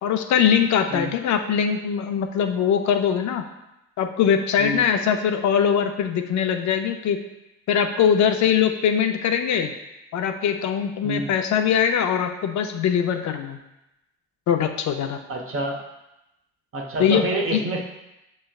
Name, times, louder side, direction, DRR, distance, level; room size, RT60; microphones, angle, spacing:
voice 1, 0.0-3.4 4.0-7.2 7.7-9.7 10.1-13.6 14.5-15.2 17.0-17.6, left 8 dB, 70° left, 6 dB, 0.5 m, -22 dB
voice 2, 15.3-15.8 16.7-17.8, right 2 dB, 45° right, 1 dB, 0.9 m, -27 dB
6.3 x 3.1 x 2.3 m, 0.92 s
cardioid pair, 90°, 30 cm